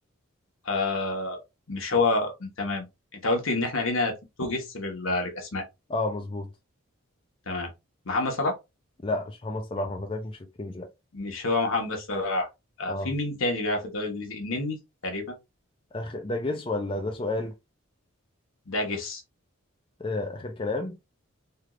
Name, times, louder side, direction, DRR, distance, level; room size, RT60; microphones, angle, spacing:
voice 1, 0.6-1.4 1.7-2.9 3.1-5.6 7.5-7.7 8.0-8.6 11.1-12.5 12.8-15.2 18.7-19.2, left 2 dB, 75° left, 1.1 m, -28 dB
voice 2, 5.9-6.5 9.0-10.9 12.9-13.1 15.9-17.5 20.0-21.0, left 2 dB, 25° left, 0.4 m, -31 dB
3.3 x 2.4 x 3.0 m
head